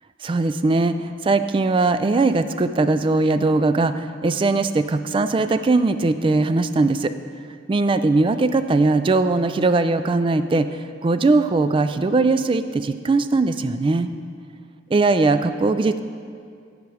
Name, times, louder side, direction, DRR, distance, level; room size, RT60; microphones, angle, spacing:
voice 1, 0.2-7.1 7.7-10.7 11.0-14.1 14.9-16.0, right 3 dB, 25° right, 11 dB, 0.3 m, -20 dB
13.0 x 5.2 x 4.8 m, 2.2 s
head